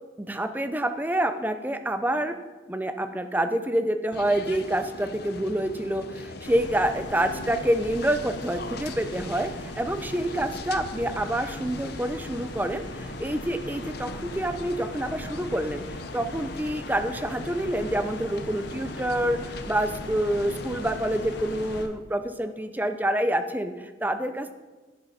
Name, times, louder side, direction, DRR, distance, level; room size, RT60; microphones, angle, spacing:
voice 1, 0.2-2.4 2.7-24.5, right 1 dB, 10° right, 9 dB, 0.5 m, -27 dB
sound 1, 4.1-21.9, left 3 dB, 55° left, 0.7 m, -40 dB
sound 2, 6.4-21.8, left 1 dB, 75° left, 1.3 m, -40 dB
11.0 x 10.5 x 4.2 m, 1.3 s
head